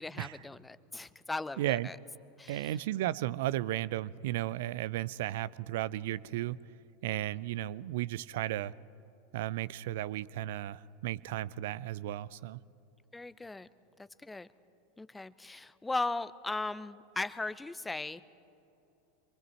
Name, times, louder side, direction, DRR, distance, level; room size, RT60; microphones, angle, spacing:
voice 1, 0.0-2.0 2.4-2.7 13.1-13.7 14.0-14.5 15.0-18.2, left 2 dB, 10° left, 15 dB, 0.6 m, -38 dB
voice 2, 1.6-1.9 2.5-6.6 7.0-8.7 9.3-12.6, right 14 dB, 60° right, 20 dB, 0.4 m, -34 dB
26.5 x 23.0 x 4.5 m, 2.9 s
figure-of-eight pair, 85°, 0 cm